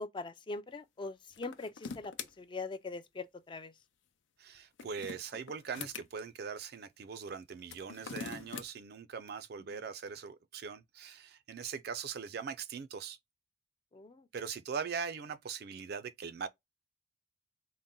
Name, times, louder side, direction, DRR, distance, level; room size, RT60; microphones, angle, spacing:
voice 1, 0.0-3.7 9.7-9.8 13.9-14.2, left 3 dB, 25° left, 0.3 m, -42 dB
sound 1, 1.3-2.3 4.6-6.1 7.6-8.7, left 6 dB, 80° left, 0.5 m, -43 dB
voice 2, 4.4-13.2 14.3-16.5, right 6 dB, 55° right, 0.4 m, -41 dB
4.0 x 2.1 x 3.7 m
head